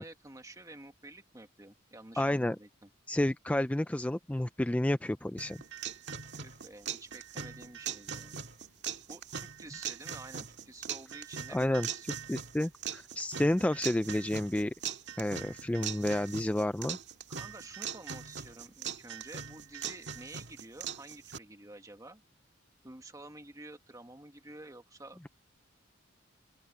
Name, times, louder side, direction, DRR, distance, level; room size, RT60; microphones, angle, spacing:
voice 1, 0.0-2.9 6.3-8.4 9.1-12.1 17.3-22.2 22.8-25.2, right 2 dB, 15° right, 1.7 m, -50 dB
voice 2, 2.2-2.6 3.1-5.6 11.5-11.9 12.3-14.7 15.2-17.0, left 1 dB, 5° left, 0.3 m, -30 dB
sound 1, 5.4-21.4, right 8 dB, 60° right, 1.9 m, -41 dB
open air
head